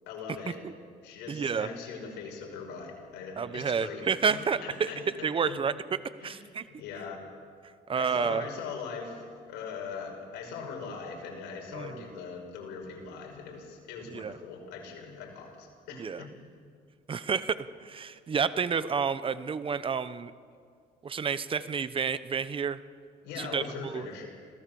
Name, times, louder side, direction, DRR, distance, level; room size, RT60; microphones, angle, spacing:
voice 1, 0.1-0.6 1.0-5.6 6.2-6.4 6.8-7.2 8.0-16.3 23.2-24.2, left 5 dB, 90° left, 1 dB, 5.9 m, -41 dB
voice 2, 1.3-1.7 3.4-4.9 5.2-5.7 6.2-6.6 7.9-8.4 11.7-12.0 14.1-14.4 15.9-16.2 17.1-20.3 21.0-22.8 23.4-24.1, right 6 dB, 30° right, 14 dB, 0.9 m, -30 dB
26.5 x 17.0 x 7.1 m, 2.1 s
cardioid pair, 110°, 17 cm